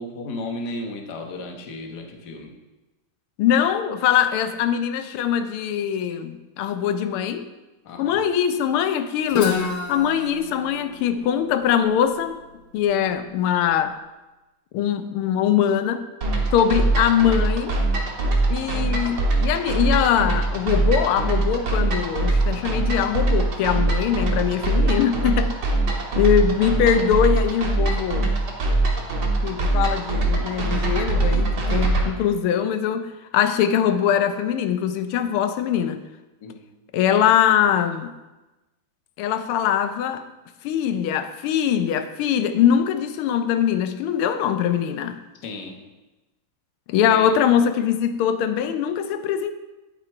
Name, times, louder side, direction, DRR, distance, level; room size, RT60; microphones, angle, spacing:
voice 1, 0.0-2.5 7.8-8.2 36.4-36.6 45.4-45.8 47.1-47.3, left 2 dB, 55° left, 2 dB, 1.6 m, -34 dB
voice 2, 3.4-7.5 8.0-12.4 12.7-14.0 14.7-16.1 16.5-17.8 18.5-25.5 26.2-28.3 29.4-36.0 36.9-38.1 39.2-40.3 40.6-45.2 46.9-49.5, left 9 dB, 90° left, 10 dB, 1.5 m, -22 dB
Guitar, 9.3-13.1, left 5 dB, 75° left, 2.0 m, -30 dB
sound 1, 16.2-32.1, right 2 dB, 55° right, 1.9 m, -22 dB
10.0 x 6.0 x 4.6 m, 1.1 s
omnidirectional pair, 2.3 m